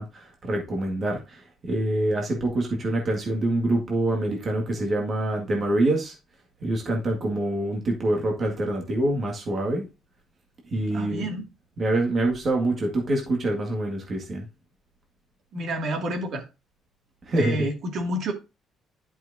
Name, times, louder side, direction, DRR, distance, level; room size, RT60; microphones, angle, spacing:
voice 1, 0.0-6.1 6.6-9.9 10.7-11.3 11.8-14.5 17.3-17.7, right 1 dB, 35° right, 1.9 m, -25 dB
voice 2, 10.9-11.4 15.5-16.4 17.3-18.3, right 1 dB, 55° right, 2.2 m, -29 dB
11.0 x 6.2 x 2.7 m
cardioid pair, 150°, 0 cm